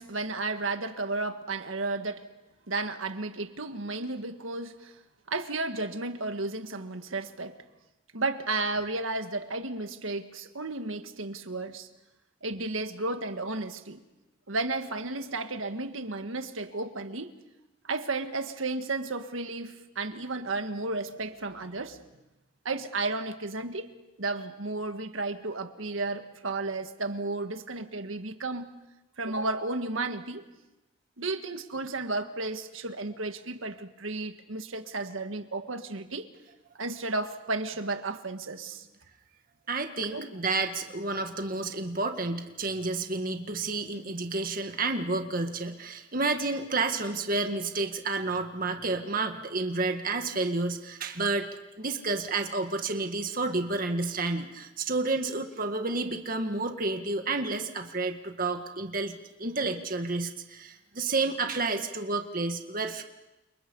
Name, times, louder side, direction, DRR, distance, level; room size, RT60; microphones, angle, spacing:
voice 1, 0.0-2.3 2.7-5.0 5.3-7.6 8.1-11.9 12.4-14.0 14.5-17.3 17.8-22.0 22.7-23.9 24.2-28.7 29.2-30.5 31.2-36.3 36.8-38.9 40.0-40.3, right 3 dB, 85° right, 1.8 m, -33 dB
voice 2, 39.7-51.5 51.8-63.0, right 3 dB, 45° right, 1.8 m, -30 dB
30.0 x 28.0 x 5.5 m
head